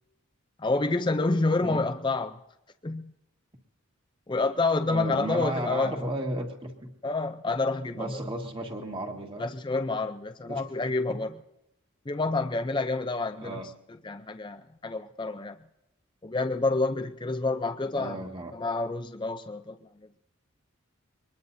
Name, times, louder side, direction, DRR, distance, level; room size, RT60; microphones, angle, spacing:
voice 1, 0.6-2.4 2.8-3.1 4.3-6.1 7.0-8.2 9.4-11.3 12.1-13.6 14.0-15.6 16.2-18.2 18.5-19.9, left 3 dB, 20° left, 0.5 m, -28 dB
voice 2, 4.9-6.9 7.9-9.5 10.5-10.6 11.1-11.2 13.4-13.7 18.0-18.5, right 1 dB, 25° right, 1.7 m, -34 dB
23.5 x 20.5 x 2.7 m
head